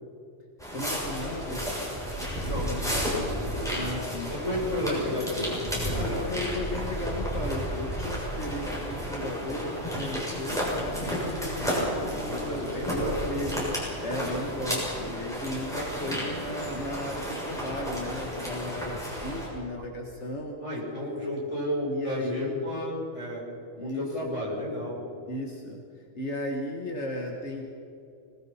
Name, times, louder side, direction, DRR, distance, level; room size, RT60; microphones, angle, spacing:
sound 1, 0.6-19.5, equal, 5° left, 6.9 m, -32 dB
voice 1, 0.7-1.7 3.7-4.3 5.9-13.7 14.0-20.6 21.9-22.7 23.8-24.4 25.3-27.6, left 1 dB, 75° left, 1 dB, 2.1 m, -35 dB
voice 2, 2.1-3.9 4.3-6.5 12.3-13.5 14.2-14.3 20.6-23.4 23.8-25.0, left 1 dB, 30° left, -5 dB, 7.2 m, -32 dB
25.5 x 19.5 x 5.8 m, 2.5 s
omnidirectional pair, 1.2 m